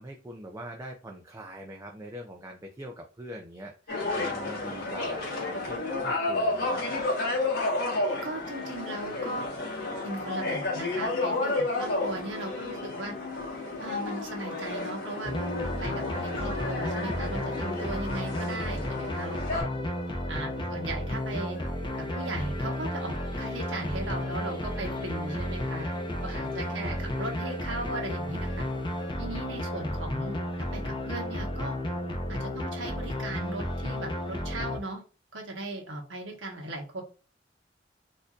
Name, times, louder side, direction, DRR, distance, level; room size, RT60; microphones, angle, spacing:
voice 1, 0.0-7.0 20.6-20.8 26.7-27.2 29.7-29.8, right 1 dB, 15° right, 1 dB, 0.4 m, -43 dB
sound 1, 3.9-19.6, left 2 dB, 55° left, 1.4 m, -31 dB
voice 2, 8.2-9.5 10.0-13.1 13.8-15.3 15.8-19.7 20.3-21.6 22.2-25.9 26.2-28.6 29.2-31.8 32.3-35.0 35.3-37.0, right 2 dB, 90° right, 1 dB, 1.1 m, -37 dB
sound 2, 15.2-34.8, left 1 dB, 25° left, 0.6 m, -33 dB
sound 3, 21.1-29.1, right 2 dB, 75° left, 1.7 m, -48 dB
4.3 x 2.6 x 2.4 m, 0.36 s
head